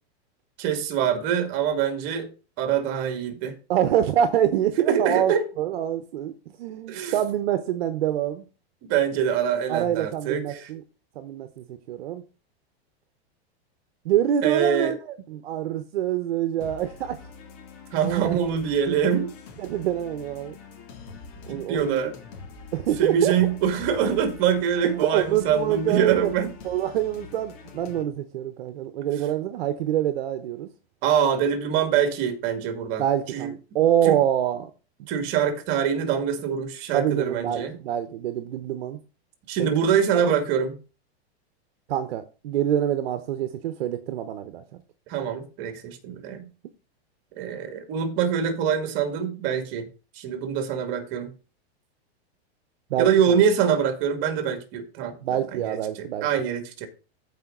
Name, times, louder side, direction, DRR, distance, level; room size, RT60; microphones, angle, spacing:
voice 1, 0.6-2.3 2.6-3.5 4.9-5.4 6.9-7.1 8.9-10.7 14.4-15.0 17.9-19.3 21.5-22.1 23.0-26.5 31.0-33.0 33.3-33.5 34.1-34.2 35.1-37.8 39.5-40.8 45.1-46.5 47.4-49.9 50.2-51.3 53.0-55.2 55.5-56.9, right 8 dB, 40° right, 2.3 m, -24 dB
voice 2, 3.7-6.3 6.6-8.4 9.7-10.8 11.2-12.2 14.0-17.2 18.0-18.4 19.6-20.6 21.5-22.0 22.7-23.3 24.8-26.3 26.6-30.7 33.0-34.7 36.9-39.0 39.6-40.2 41.9-44.6 52.9-53.4 55.2-56.3, right 11 dB, 65° right, 1.2 m, -26 dB
sound 1, 16.6-28.0, left 4 dB, 40° left, 2.6 m, -44 dB
14.5 x 5.3 x 3.9 m
supercardioid pair, 160°, 32 cm